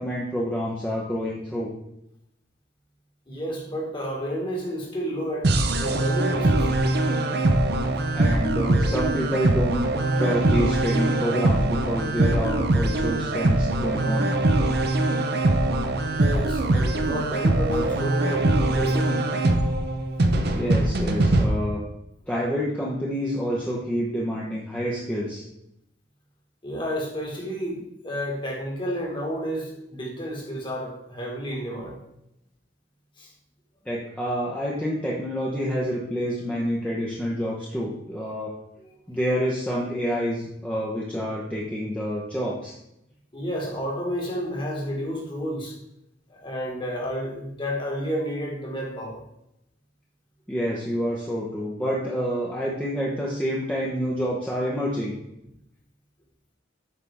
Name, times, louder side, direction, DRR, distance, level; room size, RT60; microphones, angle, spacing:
voice 1, 0.0-1.7 8.1-9.9 10.2-14.3 20.5-21.8 22.3-25.4 33.8-38.5 39.1-42.7 50.5-55.1, equal, 5° left, -5 dB, 1.0 m, -28 dB
voice 2, 3.3-5.5 5.8-6.7 16.0-19.3 26.6-32.0 33.2-33.3 38.8-38.9 43.3-45.8 46.3-49.2, equal, 25° left, 0 dB, 1.8 m, -31 dB
sound 1, 5.4-21.5, right 2 dB, 55° right, 0.7 m, -22 dB
8.7 x 5.8 x 3.5 m, 0.82 s
head